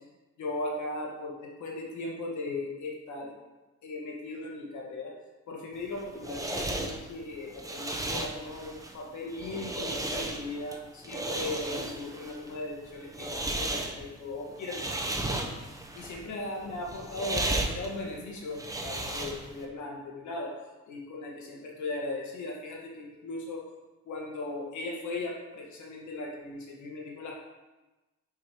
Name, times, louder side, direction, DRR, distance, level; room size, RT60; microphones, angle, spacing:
voice 1, 0.4-3.3 3.8-5.1 5.5-20.5 20.9-23.6 24.0-27.4, left 2 dB, 70° left, -1 dB, 1.5 m, -38 dB
sound 1, 5.8-19.6, right 2 dB, 10° right, 0.6 m, -35 dB
6.6 x 5.2 x 2.9 m, 1.1 s
cardioid pair, 90°, 30 cm